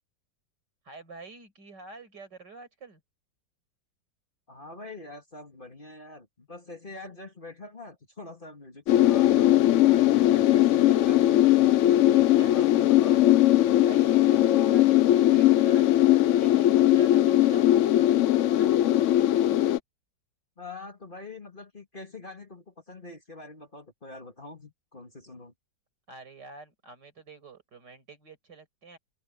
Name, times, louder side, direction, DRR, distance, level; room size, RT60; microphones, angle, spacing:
voice 1, 0.8-3.0 12.1-12.7 13.8-18.9 26.1-29.0, right 3 dB, 70° right, 6.2 m, -47 dB
voice 2, 4.5-9.5 9.9-11.3 12.5-13.2 20.6-25.5, left 2 dB, 30° left, 2.6 m, -44 dB
sound 1, 8.9-19.8, left 13 dB, 85° left, 0.6 m, -20 dB
omnidirectional pair, 1.9 m